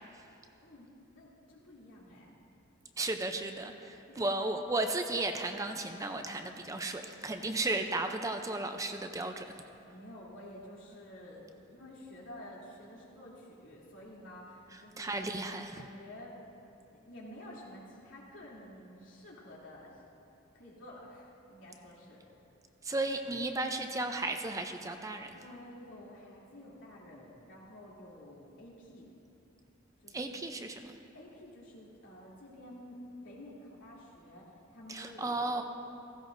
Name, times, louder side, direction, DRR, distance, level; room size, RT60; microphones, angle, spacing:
voice 1, 1.1-2.4 4.1-4.4 9.8-15.1 15.7-16.4 16.8-20.0 20.5-22.4 25.3-29.1 30.0-30.3 31.1-33.0 33.2-35.6, left 1 dB, 75° left, -5 dB, 2.9 m, -51 dB
voice 2, 3.0-9.5 14.7-15.8 22.8-25.3 30.1-31.0 34.9-35.6, right 2 dB, 15° right, 5 dB, 0.5 m, -34 dB
16.0 x 15.5 x 2.6 m, 2.7 s
head